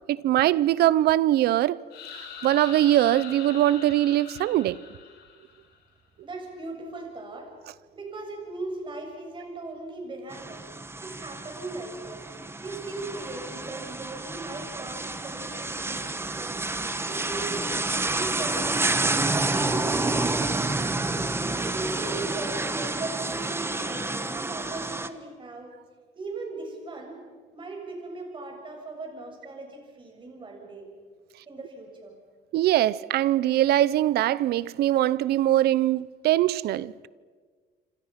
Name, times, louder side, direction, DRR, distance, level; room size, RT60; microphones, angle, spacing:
voice 1, 0.1-1.8 2.1-4.8 32.5-37.1, right 13 dB, 70° right, 0.8 m, -22 dB
sound 1, 1.9-5.7, left 7 dB, 75° left, 5.1 m, -42 dB
voice 2, 6.2-7.5 7.9-10.7 11.0-12.3 12.6-16.6 17.1-21.0 21.6-25.7 26.2-27.2 27.5-30.9 31.5-32.2, right 2 dB, 30° right, 7.3 m, -38 dB
sound 2, 10.3-25.1, right 2 dB, 15° right, 1.3 m, -29 dB
26.5 x 26.5 x 5.9 m
cardioid pair, 110°, 17 cm